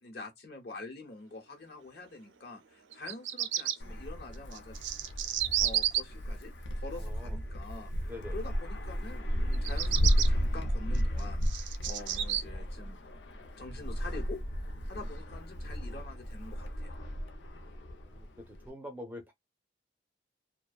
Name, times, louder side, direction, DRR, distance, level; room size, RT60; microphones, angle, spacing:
voice 1, 0.0-4.8 5.6-11.4 11.9-13.0 13.6-14.4 14.9-16.9, left 3 dB, 55° left, 1.0 m, -46 dB
Bird vocalization bird call bird song, 2.9-3.8 4.5-6.0 9.5-10.3 11.0-12.4, right 10 dB, 85° right, 0.4 m, -31 dB
Wind, 3.8-18.7, equal, 80° left, 0.6 m, -33 dB
voice 2, 7.0-7.4 8.0-8.4 18.1-19.3, left 1 dB, 10° right, 0.5 m, -45 dB
2.4 x 2.2 x 2.3 m
head